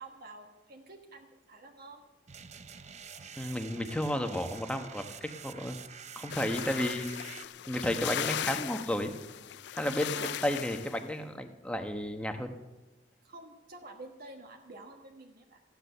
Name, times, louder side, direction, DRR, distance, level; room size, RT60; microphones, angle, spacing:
voice 1, 0.0-2.0 6.6-6.9 10.1-10.5 13.2-15.6, right 2 dB, 60° right, 2 dB, 1.4 m, -49 dB
sound 1, 2.3-7.5, right 7 dB, 40° right, 0.7 m, -48 dB
voice 2, 3.4-5.8 6.2-7.1 7.7-9.1 9.8-12.5, left 1 dB, 5° left, 6 dB, 1.1 m, -32 dB
sound 2, 6.3-11.0, left 10 dB, 70° left, 0.4 m, -38 dB
14.5 x 10.5 x 6.8 m, 1.1 s
head